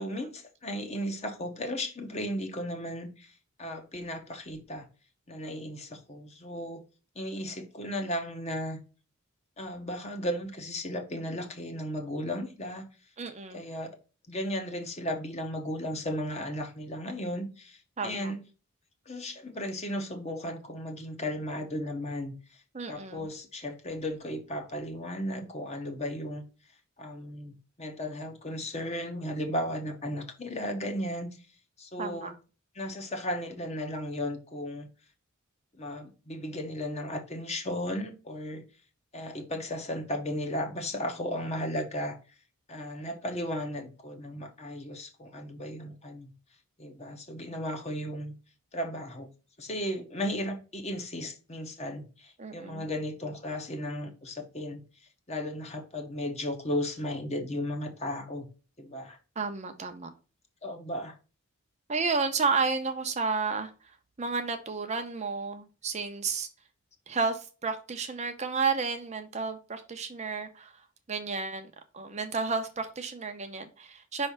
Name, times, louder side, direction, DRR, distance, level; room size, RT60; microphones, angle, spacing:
voice 1, 0.0-3.3 3.6-4.9 5.3-6.8 7.1-8.8 9.6-12.9 13.5-14.0 14.3-18.4 19.1-22.3 22.9-26.4 27.0-31.4 31.8-32.3 32.7-34.9 35.8-38.6 39.1-42.2 42.7-46.3 46.8-48.3 48.7-49.3 49.6-54.8 55.3-58.5 58.8-59.2 60.6-61.1, equal, 30° left, 1.1 m, -35 dB
voice 2, 13.2-13.6 18.0-18.3 22.7-23.3 32.0-32.3 52.4-52.9 59.4-60.1 61.9-63.7 64.2-66.5 67.1-70.7 71.1-74.3, right 4 dB, 30° right, 0.7 m, -32 dB
5.5 x 3.3 x 5.6 m
head